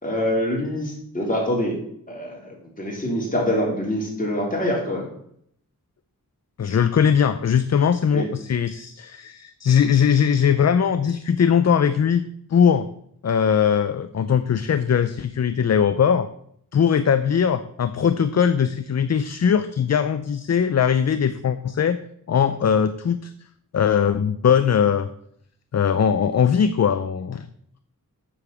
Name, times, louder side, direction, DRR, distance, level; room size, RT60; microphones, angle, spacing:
voice 1, 0.0-1.8 2.1-5.1 8.1-8.3, equal, 25° left, -2 dB, 3.7 m, -25 dB
voice 2, 6.6-12.2 12.5-12.9 13.2-16.3 16.7-22.0 22.3-23.3 23.7-25.1 25.7-27.5, left 7 dB, 50° left, 11 dB, 0.6 m, -20 dB
8.1 x 7.1 x 7.0 m, 0.68 s
wide cardioid pair, 100°, 34 cm